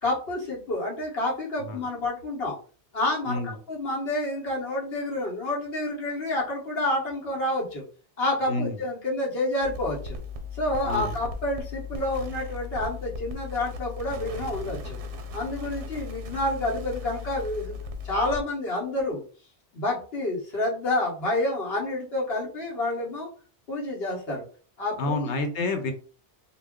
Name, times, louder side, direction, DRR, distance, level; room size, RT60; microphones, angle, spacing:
voice 1, 0.0-2.6 2.9-7.8 8.2-10.2 10.5-15.0 15.3-17.8 18.0-19.2 19.7-23.3 23.7-24.4 24.8-25.3, left 1 dB, 65° left, -4 dB, 1.0 m, -29 dB
voice 2, 8.5-8.8 10.8-11.1 25.0-25.9, left 2 dB, 90° left, 6 dB, 0.9 m, -29 dB
sound 1, 9.6-18.4, left 3 dB, 90° right, 0.9 m, -37 dB
2.2 x 2.2 x 3.5 m, 0.39 s
omnidirectional pair, 1.1 m